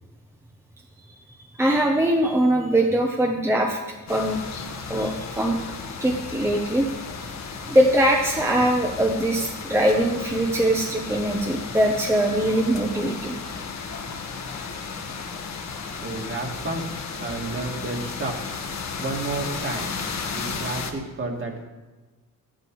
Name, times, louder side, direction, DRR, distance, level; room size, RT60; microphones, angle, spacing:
voice 1, 1.6-3.8 4.1-4.4 4.9-5.6 6.0-6.9 7.7-13.4, right 1 dB, 5° right, 1 dB, 0.9 m, -22 dB
sound 1, 4.1-20.9, left 5 dB, 50° left, 1.5 m, -34 dB
voice 2, 16.0-16.8 17.2-18.3 19.0-20.0 20.3-21.6, right 3 dB, 35° right, 1 dB, 2.3 m, -31 dB
13.0 x 11.0 x 4.7 m, 1.2 s
cardioid pair, 135°, 34 cm